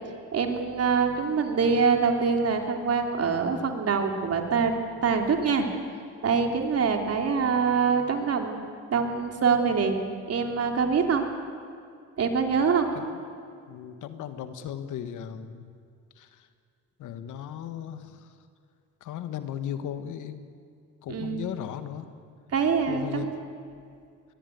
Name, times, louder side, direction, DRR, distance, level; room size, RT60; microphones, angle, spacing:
voice 1, 0.3-4.7 5.0-5.7 6.2-8.6 8.9-10.0 10.3-11.3 12.2-12.9 21.1-21.5 22.5-23.4, right 5 dB, 55° right, 4 dB, 3.3 m, -24 dB
voice 2, 13.7-15.7 16.2-16.5 17.0-18.3 19.0-20.4 21.0-22.1 22.9-23.3, left 9 dB, 85° left, 10 dB, 1.6 m, -36 dB
22.5 x 20.0 x 9.4 m, 2.3 s
cardioid pair, 90°, 30 cm